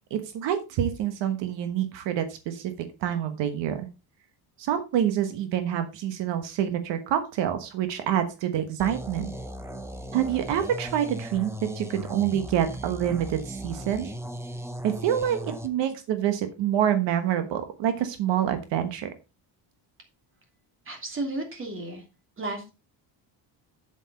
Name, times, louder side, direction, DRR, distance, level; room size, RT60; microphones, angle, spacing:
voice 1, 0.1-3.9 4.6-9.3 10.1-14.1 14.8-19.1, right 10 dB, 75° right, 9 dB, 1.3 m, -27 dB
sound 1, 8.8-15.7, equal, 5° right, 0.8 m, -37 dB
voice 2, 20.8-22.1 22.4-22.7, right 2 dB, 30° right, 4 dB, 2.8 m, -33 dB
8.2 x 7.7 x 4.2 m, 0.28 s
cardioid pair, 150°, 43 cm